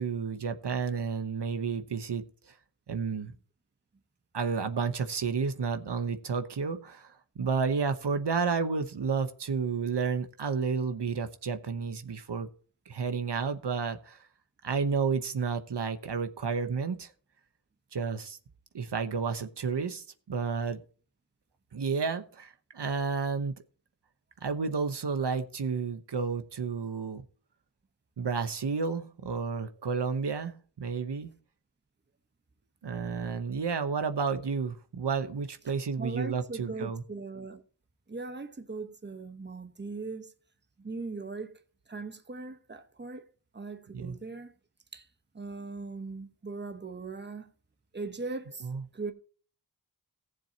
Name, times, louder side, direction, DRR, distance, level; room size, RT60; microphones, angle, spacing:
voice 1, 0.0-2.5 2.9-3.3 4.3-12.5 12.9-14.2 14.6-17.1 17.9-18.4 18.7-20.8 21.7-23.5 24.4-27.2 28.2-31.3 32.8-37.0 43.9-44.2 48.6-48.8, right 5 dB, 70° right, 1.0 m, -31 dB
voice 2, 36.0-37.6 38.1-40.4 40.8-41.5 41.9-43.3 43.5-44.5 44.9-45.1 45.3-47.5 47.9-48.7 48.9-49.1, right 3 dB, 25° right, 1.1 m, -39 dB
18.0 x 7.4 x 2.9 m
wide cardioid pair, 100°, 43 cm